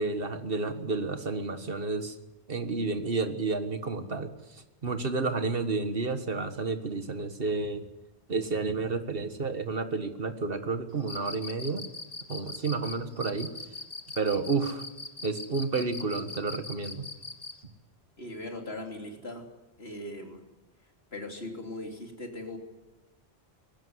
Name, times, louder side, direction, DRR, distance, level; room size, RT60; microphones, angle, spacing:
voice 1, 0.0-2.2 2.5-4.3 4.8-7.8 8.3-11.9 12.3-13.5 14.2-14.8 15.2-17.0, right 4 dB, 55° right, 8 dB, 1.8 m, -30 dB
Cricket, 11.0-17.6, left 2 dB, 35° left, 1.8 m, -40 dB
voice 2, 18.2-19.5 19.8-20.4 21.1-22.6, left 1 dB, 65° left, 2 dB, 3.6 m, -39 dB
21.0 x 17.0 x 9.5 m, 1.0 s
omnidirectional pair, 1.1 m